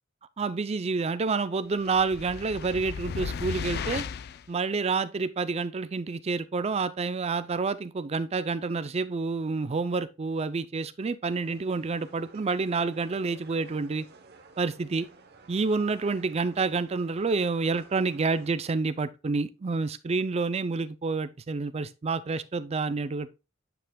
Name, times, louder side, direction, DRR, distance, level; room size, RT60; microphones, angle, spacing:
voice 1, 0.4-4.0 4.5-14.1 14.6-15.1 15.5-23.3, right 4 dB, 30° right, 0.4 m, -28 dB
sound 1, 1.8-4.5, left 6 dB, 55° left, 0.4 m, -35 dB
sound 2, 11.3-18.5, right 4 dB, 55° right, 0.9 m, -53 dB
9.2 x 5.6 x 2.2 m
head